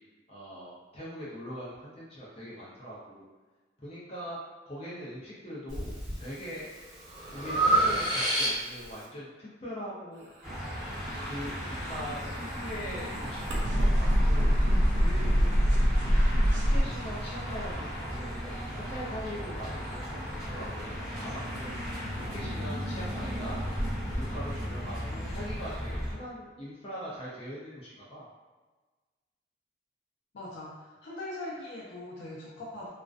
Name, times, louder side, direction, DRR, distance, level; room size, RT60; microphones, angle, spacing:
voice 1, 0.3-3.3 3.8-4.4 4.6-6.7 7.3-10.3 11.0-15.8 16.3-23.6 24.1-28.3, equal, 35° left, -8 dB, 0.5 m, -42 dB
Breathing, 5.7-6.2 6.7-8.9, right 1 dB, 15° right, 1.2 m, -27 dB
sound 1, 10.4-26.1, equal, ahead, 0.9 m, -36 dB
sound 2, 11.7-16.8, equal, 90° right, 0.5 m, -24 dB
voice 2, 30.3-32.9, left 1 dB, 85° left, -5 dB, 0.5 m, -41 dB
2.4 x 2.1 x 2.4 m, 1.3 s
head